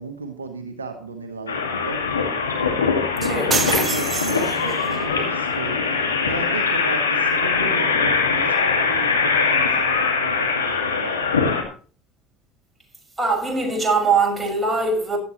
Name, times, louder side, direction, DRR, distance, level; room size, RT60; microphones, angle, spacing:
voice 1, 0.0-2.0 3.2-5.8 6.2-11.3, right 4 dB, 85° right, 1.2 m, -34 dB
sound 1, 1.5-11.6, left 5 dB, 85° left, 2.1 m, -22 dB
voice 2, 3.2-3.6 13.2-15.2, right 3 dB, 10° right, 5.8 m, -21 dB
sound 2, 3.5-5.0, right 5 dB, 30° right, 1.1 m, -25 dB
15.5 x 11.5 x 3.1 m
figure-of-eight pair, 65°, 0 cm